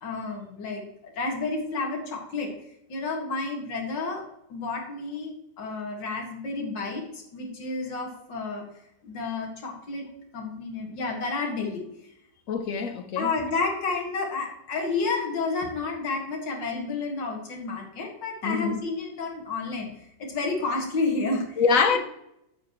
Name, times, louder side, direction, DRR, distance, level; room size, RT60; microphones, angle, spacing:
voice 1, 0.0-2.5 2.9-4.2 4.5-8.6 9.0-10.1 10.3-11.8 13.2-19.9 20.2-21.6 21.9-22.0, left 3 dB, 70° left, 2.5 m, -30 dB
voice 2, 12.5-13.3 18.4-18.8 21.6-22.0, left 5 dB, 55° left, 1.1 m, -24 dB
9.4 x 8.8 x 3.0 m
omnidirectional pair, 2.0 m